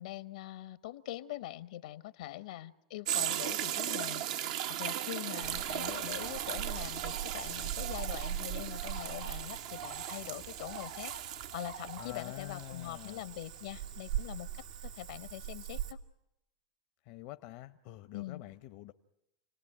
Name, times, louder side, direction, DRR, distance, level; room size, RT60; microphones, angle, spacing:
voice 1, 0.0-4.4 4.7-11.1 11.5-16.0 18.1-18.4, left 14 dB, 75° left, 13 dB, 1.2 m, -43 dB
sound 1, 3.0-13.6 14.1-14.2, right 11 dB, 70° right, 1.1 m, -38 dB
Cricket / Frog, 5.4-15.9, right 10 dB, 85° right, 2.1 m, -41 dB
voice 2, 12.0-13.3 17.0-18.9, left 16 dB, 60° left, 10 dB, 0.9 m, -47 dB
29.0 x 19.0 x 10.0 m, 0.86 s
hypercardioid pair, 105°, 4 cm